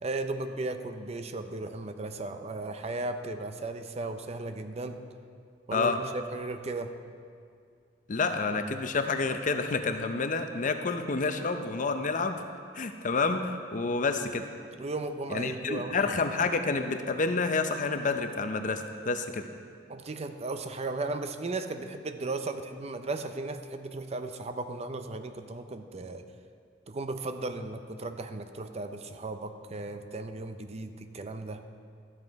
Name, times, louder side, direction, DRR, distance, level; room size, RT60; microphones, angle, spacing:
voice 1, 0.0-5.1 5.7-6.9 14.8-16.2 19.9-26.2 26.9-31.6, right 2 dB, 35° right, 8 dB, 0.5 m, -36 dB
voice 2, 8.1-12.4 12.7-14.5 15.3-19.4, left 4 dB, 45° left, 7 dB, 0.6 m, -29 dB
12.5 x 7.6 x 4.6 m, 2.2 s
head